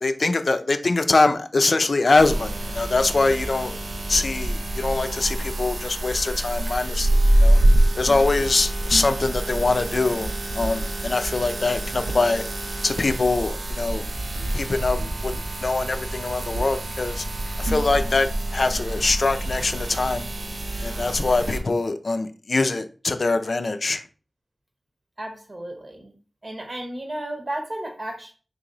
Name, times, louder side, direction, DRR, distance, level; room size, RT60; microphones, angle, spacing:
voice 1, 0.0-3.8 4.1-7.1 7.4-7.6 8.0-12.4 12.8-14.0 14.5-15.3 15.6-17.2 17.6-20.3 20.8-24.0, left 3 dB, 65° left, 0.4 m, -23 dB
sound 1, 2.2-21.6, right 1 dB, 75° right, 0.5 m, -25 dB
voice 2, 25.2-26.1 26.4-28.3, right 1 dB, 50° right, 1.0 m, -33 dB
2.9 x 2.8 x 3.9 m
cardioid pair, 40°, 0 cm